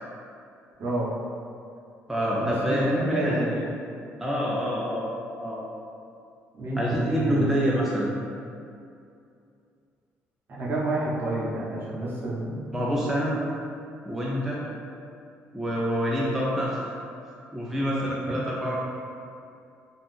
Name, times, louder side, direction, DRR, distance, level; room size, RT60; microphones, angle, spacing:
voice 1, 0.8-1.1 2.4-3.6 6.5-7.4 10.5-12.7, right 2 dB, 45° right, -6 dB, 0.7 m, -29 dB
voice 2, 2.1-3.4 4.2-5.1 5.4-5.6 6.8-8.1 12.7-13.4 14.1-14.6 15.5-16.9 17.5-18.8, equal, 5° right, -5 dB, 0.4 m, -26 dB
2.5 x 2.3 x 3.4 m, 2.5 s
cardioid pair, 105°, 5 cm